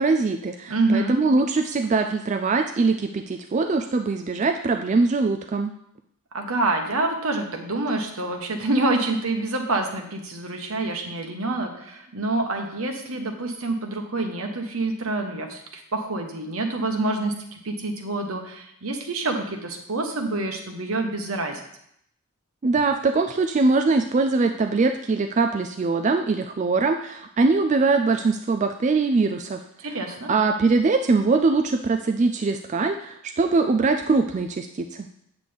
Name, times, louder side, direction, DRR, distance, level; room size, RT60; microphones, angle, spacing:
voice 1, 0.0-5.7 22.6-35.1, right 3 dB, 35° right, 6 dB, 0.3 m, -22 dB
voice 2, 0.7-1.2 6.3-21.6 29.8-30.3, right 2 dB, 70° right, 4 dB, 1.3 m, -27 dB
8.3 x 7.6 x 3.5 m, 0.73 s
head